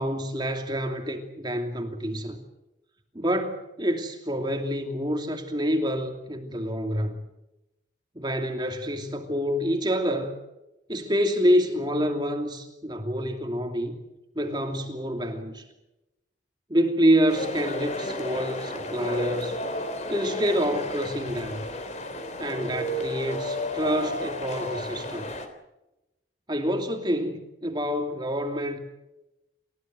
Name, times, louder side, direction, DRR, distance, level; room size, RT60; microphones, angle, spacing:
voice 1, 0.0-2.4 3.1-7.2 8.1-10.4 10.9-13.9 14.3-15.6 16.7-19.6 20.1-21.6 22.4-25.3 26.5-28.8, equal, 25° right, 2.8 m, -27 dB
sound 1, 17.3-25.5, left 1 dB, 40° left, 3.4 m, -32 dB
29.5 x 16.0 x 7.8 m
head